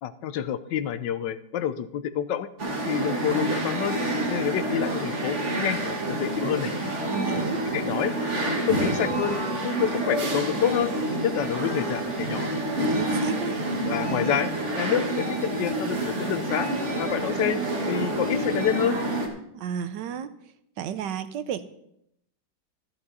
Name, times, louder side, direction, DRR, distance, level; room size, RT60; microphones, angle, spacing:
voice 1, 0.0-2.5 2.9-4.0 4.3-6.7 7.7-8.1 8.7-10.9 11.2-12.5 13.8-14.5 14.8-16.7 17.0-17.6 17.9-19.0, left 10 dB, 80° left, 13 dB, 1.3 m, -28 dB
sound 1, 2.6-19.3, right 1 dB, 40° right, 1.9 m, -28 dB
voice 2, 7.1-7.6 12.9-13.6 19.5-20.3 20.8-21.6, right 9 dB, 75° right, 12 dB, 1.3 m, -32 dB
13.0 x 10.5 x 4.1 m, 0.76 s
omnidirectional pair, 2.0 m